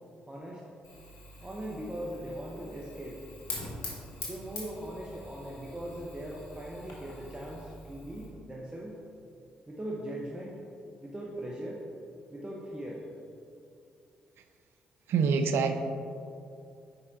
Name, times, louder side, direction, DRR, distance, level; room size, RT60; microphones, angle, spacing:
voice 1, 0.3-0.6 1.4-3.2 4.2-9.0 9.7-10.6 11.0-11.8 12.3-13.0, right 1 dB, 20° right, -4 dB, 0.9 m, -40 dB
Fire, 0.8-8.3, left 2 dB, 70° left, 1.2 m, -44 dB
voice 2, 15.1-15.7, right 5 dB, 65° right, 7 dB, 0.4 m, -25 dB
5.5 x 4.7 x 4.1 m, 2.5 s
hypercardioid pair, 45°, 4 cm